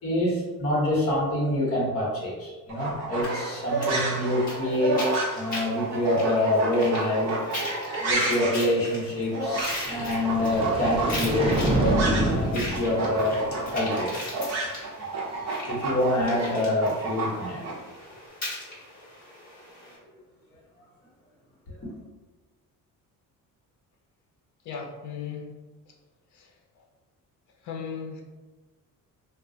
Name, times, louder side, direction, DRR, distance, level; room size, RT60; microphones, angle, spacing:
voice 1, 0.0-5.1 5.3-7.4 8.0-13.4 13.7-14.1 15.7-17.7 21.7-21.8, left 1 dB, 45° left, -4 dB, 1.1 m, -26 dB
sound 1, 2.7-12.4 12.7-17.7, right 2 dB, 50° right, 0.7 m, -30 dB
sound 2, 3.2-20.0, left 1 dB, 25° left, 1.2 m, -39 dB
sound 3, 9.7-14.0, right 1 dB, 15° right, 0.4 m, -28 dB
voice 2, 24.6-25.5 25.9-26.0 26.3-26.8 27.6-28.2, left 6 dB, 60° left, 0 dB, 0.7 m, -37 dB
2.4 x 2.3 x 3.8 m, 1.2 s
cardioid pair, 180°, 33 cm